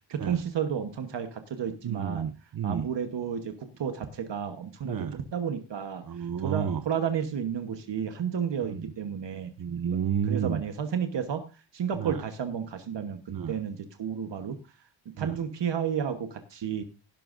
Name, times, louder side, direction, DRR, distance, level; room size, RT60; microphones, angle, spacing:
voice 1, 0.1-2.3 2.6-9.5 10.3-11.5 11.7-13.2 13.5-14.6 15.2-16.8, right 8 dB, 60° right, 7 dB, 1.2 m, -32 dB
voice 2, 1.8-2.9 4.8-5.2 6.1-6.8 8.6-8.9 9.6-10.6 12.0-12.2 13.3-13.5 15.2-15.4, right 8 dB, 45° right, 9 dB, 0.7 m, -31 dB
17.0 x 11.0 x 2.6 m, 0.31 s
wide cardioid pair, 175°, 48 cm